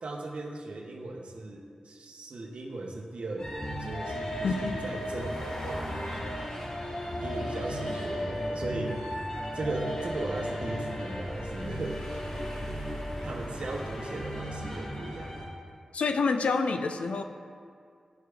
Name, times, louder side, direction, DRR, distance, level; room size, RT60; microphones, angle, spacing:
voice 1, 0.0-6.3 7.2-9.0 9.5-12.0 13.2-15.4, right 2 dB, 65° right, 1 dB, 0.8 m, -37 dB
sound 1, 3.4-15.5, equal, 40° left, 1.2 m, -35 dB
voice 2, 4.4-4.8 15.9-17.2, left 4 dB, 80° left, 7 dB, 0.4 m, -27 dB
10.5 x 4.8 x 2.3 m, 2.2 s
wide cardioid pair, 70°, 2 cm